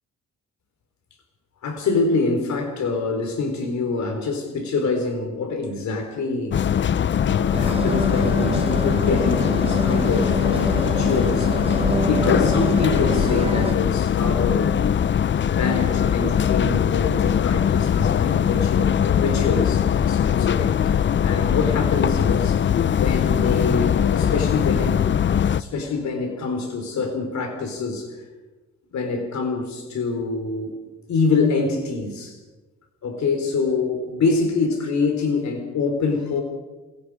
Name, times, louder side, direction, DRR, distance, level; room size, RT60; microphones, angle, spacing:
voice 1, 1.6-6.6 7.2-11.5 12.0-14.7 15.4-20.7 21.0-22.6 22.9-25.0 25.6-28.1 28.9-30.7 31.1-32.4 33.0-36.4, left 4 dB, 65° left, 5 dB, 4.4 m, -25 dB
sound 1, 6.5-25.6, left 8 dB, 40° left, 0.6 m, -21 dB
sound 2, 7.5-13.7, right 3 dB, 20° right, 1.3 m, -28 dB
28.5 x 23.0 x 5.0 m, 1.2 s
cardioid pair, 90°, 30 cm